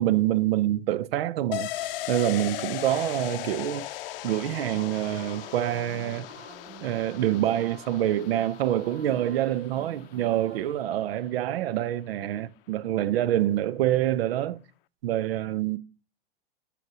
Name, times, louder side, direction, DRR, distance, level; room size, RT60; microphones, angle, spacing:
voice 1, 0.0-3.9 4.2-6.3 6.8-14.6 15.0-15.8, right 12 dB, 85° right, 0.7 m, -26 dB
sound 1, 1.5-10.9 11.2-11.3, left 15 dB, 70° left, 0.7 m, -38 dB
sound 2, 4.7-10.8, right 8 dB, 35° right, 1.4 m, -50 dB
6.8 x 6.1 x 6.1 m
supercardioid pair, 135°, 29 cm